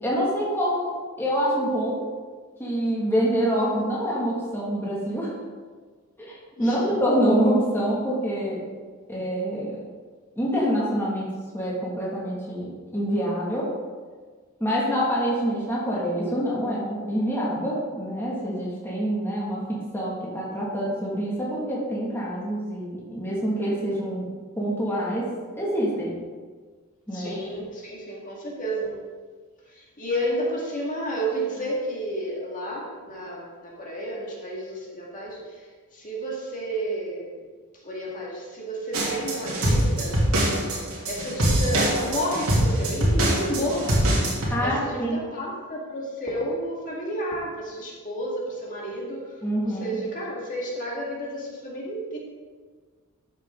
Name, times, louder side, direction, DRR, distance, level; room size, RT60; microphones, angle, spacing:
voice 1, 0.0-2.1 2.6-5.3 6.2-8.6 9.1-9.8 10.4-13.7 14.6-24.3 24.6-26.2 27.1-27.4 44.5-45.2 49.4-49.9, equal, 10° left, -6 dB, 2.1 m, -26 dB
voice 2, 6.6-7.0 27.1-28.9 29.7-37.4 37.7-40.2 41.1-44.0 44.6-49.4 49.6-52.2, right 1 dB, 35° left, -4 dB, 2.2 m, -31 dB
sound 1, 38.9-44.5, right 1 dB, 70° right, 2.9 m, -23 dB
13.0 x 7.4 x 3.8 m, 1.5 s
head